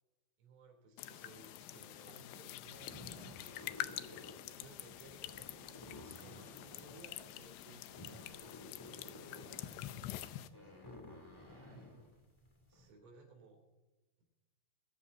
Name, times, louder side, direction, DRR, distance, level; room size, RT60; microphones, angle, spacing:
voice 1, 0.4-2.2 3.9-7.0 8.6-9.5 12.7-13.6, right 3 dB, 80° right, 2 dB, 6.0 m, -60 dB
sound 1, 1.0-10.5, left 14 dB, 85° left, 2.4 m, -47 dB
voice 2, 2.1-3.4 4.5-4.7 6.7-8.7 9.1-10.9 11.6-11.8, right 3 dB, 55° right, -3 dB, 5.7 m, -60 dB
sound 2, 2.5-12.9, left 1 dB, 10° left, 1.8 m, -54 dB
23.0 x 14.0 x 2.8 m, 1.1 s
omnidirectional pair, 5.6 m